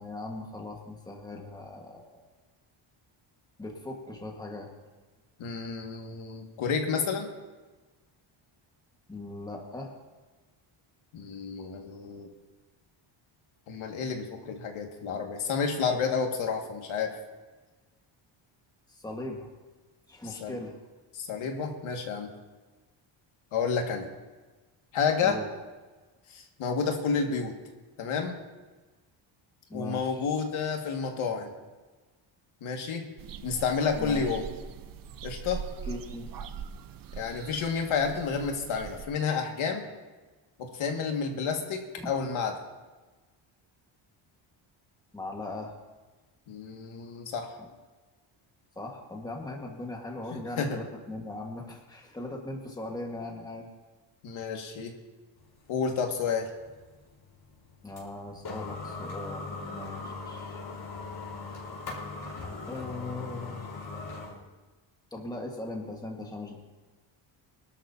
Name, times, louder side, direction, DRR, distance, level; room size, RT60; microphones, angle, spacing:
voice 1, 0.0-2.2 3.6-4.7 9.1-9.9 18.9-19.5 20.1-20.8 25.2-25.5 29.7-30.3 33.9-34.3 35.9-36.3 42.0-42.1 45.1-45.7 47.6-47.7 48.7-53.7 57.8-60.6 62.7-63.7 65.1-66.6, left 2 dB, 10° left, 0 dB, 1.6 m, -39 dB
voice 2, 5.4-7.3 11.1-12.3 13.7-17.1 20.2-20.6 21.1-22.3 23.5-24.1 24.9-25.4 26.3-27.6 28.0-28.4 29.7-31.5 32.6-33.0 33.4-34.5 35.2-35.6 37.2-39.8 40.6-42.5 46.5-47.6 50.3-50.8 54.2-54.9 55.7-56.5, left 5 dB, 75° left, 2 dB, 2.1 m, -30 dB
sound 1, 33.2-39.1, right 6 dB, 45° right, 0.6 m, -41 dB
sound 2, 55.4-64.4, left 3 dB, 45° left, 4.3 m, -40 dB
24.0 x 12.5 x 2.8 m, 1.3 s
cardioid pair, 170°, 50 cm